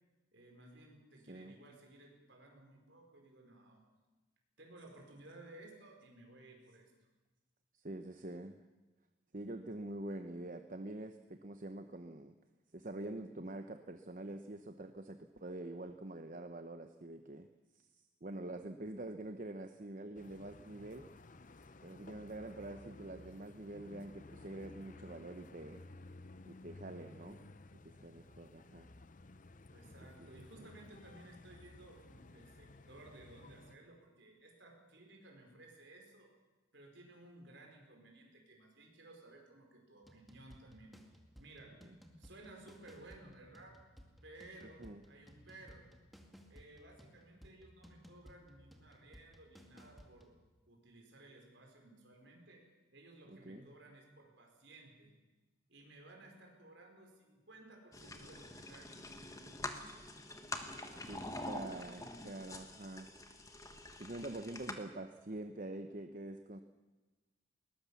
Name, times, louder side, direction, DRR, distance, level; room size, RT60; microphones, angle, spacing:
voice 1, 0.3-3.8 4.6-6.9 29.7-36.3 36.7-41.1 41.4-41.8 42.2-43.8 44.2-45.9 46.5-50.3 50.7-52.7 52.9-55.1 55.7-59.8, right 2 dB, 60° right, 2 dB, 5.2 m, -57 dB
voice 2, 7.7-8.6 9.3-12.3 12.7-17.5 17.7-17.8 18.2-21.0 21.8-25.8 26.5-27.4 28.0-28.9 30.2-30.3 44.8-45.0 53.5-53.7 59.7-60.1 61.1-63.1 64.0-66.6, right 1 dB, 40° right, 8 dB, 0.9 m, -46 dB
sound 1, 20.1-33.7, left 2 dB, 40° left, 0.7 m, -56 dB
sound 2, 40.0-50.4, equal, ahead, 2.0 m, -60 dB
sound 3, 57.9-64.7, left 2 dB, 15° left, 1.5 m, -46 dB
21.0 x 19.5 x 7.2 m, 1.2 s
head